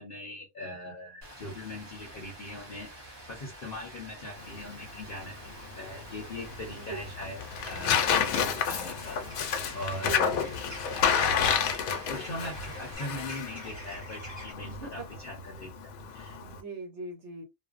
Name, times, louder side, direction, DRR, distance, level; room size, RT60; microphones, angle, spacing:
voice 1, 0.0-10.2 11.0-11.8 12.1-15.7 16.1-16.4, left 1 dB, 50° left, 0.8 m, -41 dB
Rain, 1.2-13.0, right 1 dB, 30° right, 0.5 m, -48 dB
Tearing, 4.4-16.6, left 7 dB, 90° left, 1.0 m, -31 dB
sound 1, 7.6-14.5, equal, 15° right, 1.2 m, -47 dB
voice 2, 10.0-10.5 14.7-15.1 16.4-17.4, right 3 dB, 60° right, 1.0 m, -40 dB
2.5 x 2.0 x 2.4 m
omnidirectional pair, 1.4 m